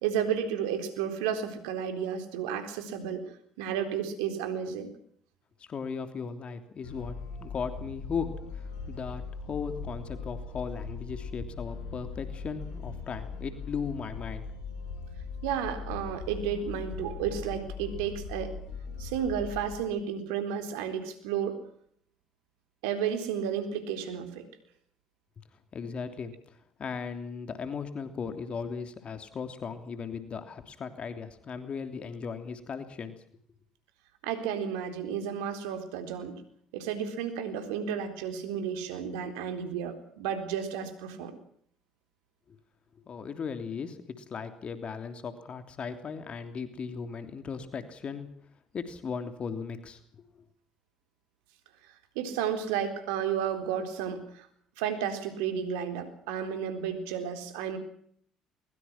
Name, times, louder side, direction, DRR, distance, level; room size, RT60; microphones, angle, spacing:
voice 1, 0.0-3.2 3.6-4.9 15.4-18.5 19.0-21.6 22.8-24.5 34.2-36.4 36.7-41.3 52.2-54.5 54.8-57.8, right 8 dB, 80° right, 8 dB, 4.0 m, -32 dB
voice 2, 5.6-14.5 25.4-25.5 25.7-33.2 42.5-42.6 43.1-48.3 48.7-50.2, left 5 dB, 45° left, 8 dB, 3.2 m, -37 dB
sound 1, 6.8-19.8, left 5 dB, 80° left, 6.5 m, -40 dB
23.0 x 22.0 x 6.0 m, 0.63 s
hypercardioid pair, 60°, 3 cm